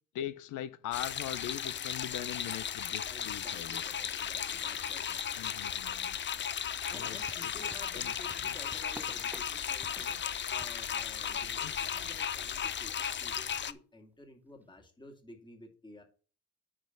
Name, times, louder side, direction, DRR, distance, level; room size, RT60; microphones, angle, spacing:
voice 1, 0.1-3.8 5.4-6.2 6.9-7.5 7.9-8.2 8.4-8.6 11.6-11.7, left 12 dB, 80° left, 0.7 m, -41 dB
sound 1, 0.9-13.7, left 8 dB, 40° left, 0.6 m, -36 dB
voice 2, 3.1-16.0, left 1 dB, 15° left, 2.3 m, -53 dB
sound 2, 6.9-12.9 13.3-13.4 14.2-14.3, right 1 dB, 5° right, 0.5 m, -53 dB
9.9 x 3.3 x 6.6 m
cardioid pair, 90°, 30 cm